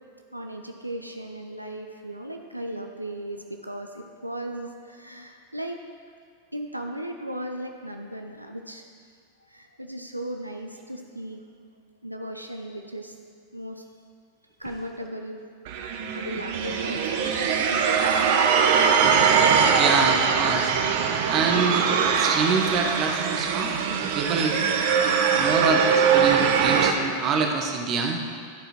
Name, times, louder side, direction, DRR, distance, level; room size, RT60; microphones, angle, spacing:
voice 1, 0.3-5.8 6.5-8.9 9.4-11.4 12.0-13.2 13.5-13.8 14.6-15.4 16.1-18.5, right 1 dB, 90° right, 3 dB, 0.6 m, -36 dB
sound 1, 15.7-26.9, right 6 dB, 50° right, 0.7 m, -22 dB
voice 2, 19.5-20.7 21.2-23.7 24.0-24.6 25.3-28.2, right 5 dB, 35° right, 3 dB, 1.1 m, -26 dB
13.0 x 4.9 x 4.5 m, 2.1 s
figure-of-eight pair, 90°, 0 cm